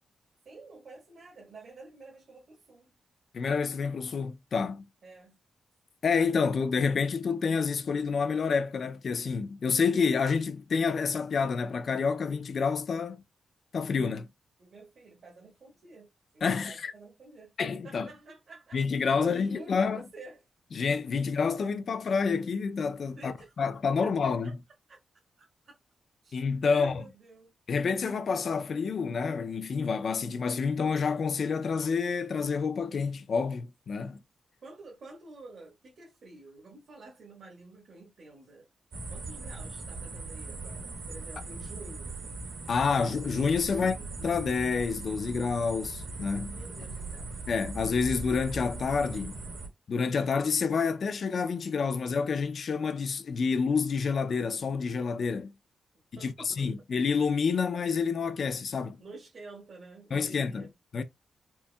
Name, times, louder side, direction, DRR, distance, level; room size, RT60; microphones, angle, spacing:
voice 1, 0.4-2.9 5.0-5.4 14.6-16.1 16.3-17.5 17.8-20.4 23.2-23.7 24.0-24.5 24.9-25.0 25.4-25.7 26.2-27.5 34.6-38.6 39.1-42.3 43.7-44.1 46.5-47.3 56.2-56.5 59.0-60.7, right 3 dB, 55° right, 1.4 m, -50 dB
voice 2, 3.3-4.9 6.0-13.2 13.7-14.3 16.4-16.9 17.6-18.1 18.7-20.0 20.7-24.5 26.3-27.1 27.7-34.2 42.7-44.0 44.2-46.6 47.5-49.3 49.9-55.5 56.2-59.0 60.1-60.7 60.9-61.0, left 5 dB, 50° left, 0.4 m, -28 dB
sound 1, 38.9-49.7, right 2 dB, 80° right, 2.3 m, -39 dB
4.5 x 3.1 x 2.3 m
wide cardioid pair, 150°, 0 cm